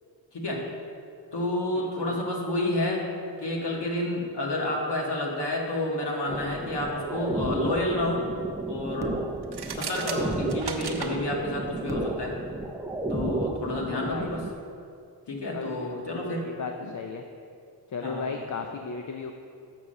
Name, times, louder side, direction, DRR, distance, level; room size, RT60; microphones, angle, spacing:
voice 1, 0.3-0.6 1.3-3.0 3.4-8.2 8.7-9.2 9.7-12.4 13.1-14.5 15.3-16.5 16.8-16.9 18.0-18.3, left 1 dB, 75° left, -1 dB, 1.7 m, -29 dB
sound 1, 6.3-14.5, right 2 dB, 10° right, 0.5 m, -32 dB
sound 2, 9.4-11.1, right 6 dB, 70° right, 0.9 m, -35 dB
voice 2, 13.7-14.4 15.5-15.9 16.1-17.2 17.9-19.3, left 5 dB, 45° left, 4 dB, 0.5 m, -36 dB
7.0 x 6.1 x 6.5 m, 2.5 s
wide cardioid pair, 95°, 40 cm